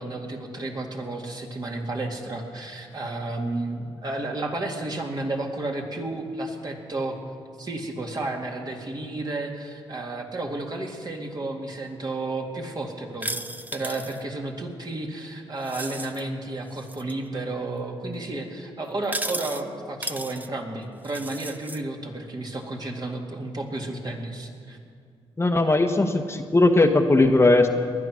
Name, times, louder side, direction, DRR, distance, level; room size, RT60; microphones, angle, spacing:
voice 1, 0.0-7.2 7.6-13.5 13.7-24.8, right 2 dB, 40° right, 1 dB, 2.3 m, -32 dB
sound 1, 13.2-14.2 15.6-16.2 16.8-17.1 19.0-19.6 20.0-20.5 21.0-21.8, right 2 dB, 15° right, 0.7 m, -34 dB
voice 2, 25.4-27.7, left 2 dB, 25° left, 5 dB, 1.1 m, -18 dB
19.5 x 11.0 x 6.3 m, 2.2 s
cardioid pair, 75°, 11 cm